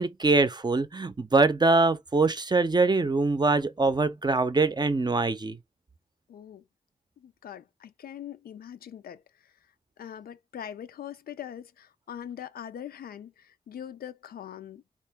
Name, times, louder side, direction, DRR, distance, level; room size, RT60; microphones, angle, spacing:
voice 1, 0.0-5.6, right 3 dB, 30° right, 0.5 m, -23 dB
voice 2, 6.3-6.6 7.2-9.5 10.0-14.8, left 9 dB, 80° left, 0.4 m, -42 dB
3.6 x 2.4 x 3.4 m
cardioid pair, 45°, 15 cm